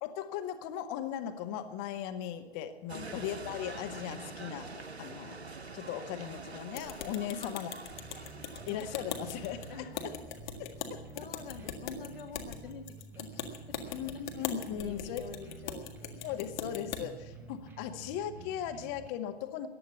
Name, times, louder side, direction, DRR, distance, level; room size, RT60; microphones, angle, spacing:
voice 1, 0.0-7.7 8.1-8.2 8.7-9.6 10.0-10.1 10.6-11.0 13.9-15.2 16.2-19.7, left 10 dB, 25° left, 8 dB, 0.8 m, -38 dB
sound 1, 2.9-9.8, right 4 dB, 90° right, 0.7 m, -45 dB
sound 2, 6.7-17.0, left 7 dB, 45° left, 1.9 m, -41 dB
voice 2, 7.3-7.6 9.7-10.1 11.1-13.8 14.1-14.3 14.6-16.2, left 5 dB, 60° left, 4 dB, 2.3 m, -47 dB
sound 3, 7.9-19.1, right 3 dB, 5° right, 0.4 m, -50 dB
15.0 x 10.5 x 8.3 m, 1.2 s
figure-of-eight pair, 115°, 31 cm